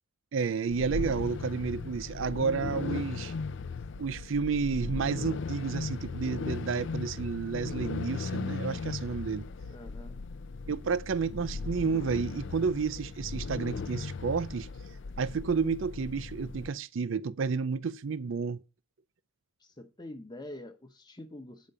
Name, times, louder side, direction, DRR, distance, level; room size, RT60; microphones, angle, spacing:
voice 1, 0.3-3.3 4.0-9.5 10.7-14.7 15.2-18.6, right 5 dB, 65° right, 0.5 m, -31 dB
sound 1, 0.7-16.7, left 4 dB, 60° left, 0.5 m, -37 dB
voice 2, 9.7-10.2 19.6-21.7, left 1 dB, 20° left, 0.9 m, -45 dB
8.5 x 5.2 x 6.6 m
head